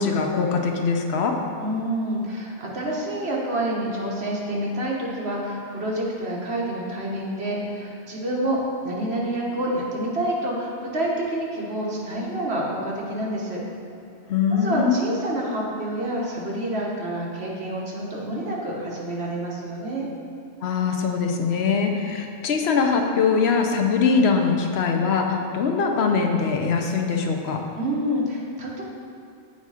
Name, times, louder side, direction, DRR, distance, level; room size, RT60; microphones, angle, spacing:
voice 1, 0.0-1.4 14.3-15.0 20.6-27.6, left 5 dB, 70° left, 2 dB, 0.9 m, -22 dB
voice 2, 1.6-13.6 14.5-20.1 27.7-28.8, right 1 dB, 65° right, -4 dB, 1.5 m, -28 dB
8.2 x 4.1 x 4.8 m, 2.6 s
omnidirectional pair, 1.2 m